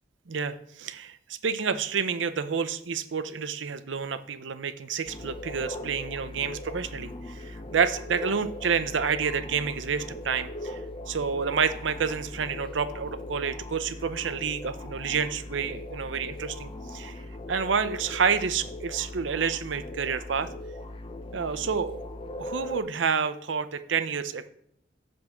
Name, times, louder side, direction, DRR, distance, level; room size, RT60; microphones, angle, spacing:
voice 1, 0.3-1.2 1.4-10.8 11.1-17.2 17.5-20.5 21.3-22.0 22.4-24.5, right 6 dB, 80° right, 11 dB, 0.6 m, -29 dB
sound 1, 5.1-22.8, left 1 dB, 30° left, 0.6 m, -39 dB
7.8 x 3.6 x 6.4 m, 0.73 s
head